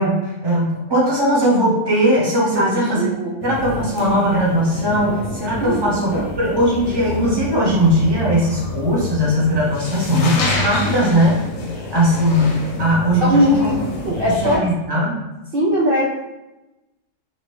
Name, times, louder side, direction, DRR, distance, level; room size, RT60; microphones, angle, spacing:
voice 1, 0.0-3.1 3.4-6.1 6.4-11.4 11.9-13.7 14.1-15.2, equal, 20° right, -4 dB, 0.6 m, -19 dB
voice 2, 2.5-3.3 5.6-5.8 6.1-6.3 13.2-13.7 14.0-14.6 15.5-16.1, equal, 65° right, -6 dB, 0.5 m, -19 dB
sound 1, 3.4-14.6, left 2 dB, 60° left, 1.0 m, -28 dB
3.9 x 3.0 x 3.2 m, 0.99 s
omnidirectional pair, 1.8 m